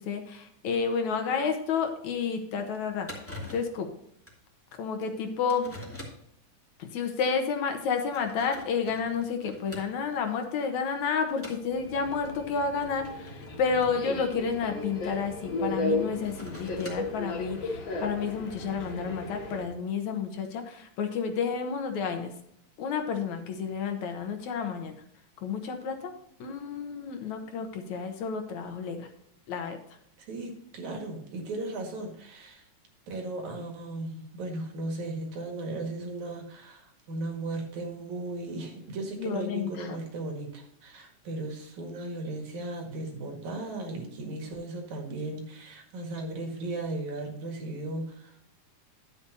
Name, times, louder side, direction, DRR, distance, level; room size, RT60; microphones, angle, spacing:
voice 1, 0.0-3.1 3.5-3.9 4.8-5.7 6.8-22.3 22.8-25.0 25.4-26.1 26.4-29.1 29.5-29.8 39.2-40.0, left 6 dB, 70° left, 5 dB, 2.4 m, -30 dB
sound 1, 1.9-2.0 2.4-2.5 2.7-2.8 3.1-3.8 4.3-4.4 5.0-5.1 5.5-6.3 7.1-7.3 7.9-10.2 10.6-10.9 11.4-11.7 12.7-15.2 16.0-17.2, left 1 dB, 5° left, 2.2 m, -45 dB
Subway metro underground, 11.7-19.6, left 2 dB, 45° left, 2.3 m, -35 dB
voice 2, 30.3-32.7 33.1-48.4, right 2 dB, 70° right, 2 dB, 3.2 m, -36 dB
11.0 x 8.3 x 2.8 m, 0.71 s
omnidirectional pair, 3.6 m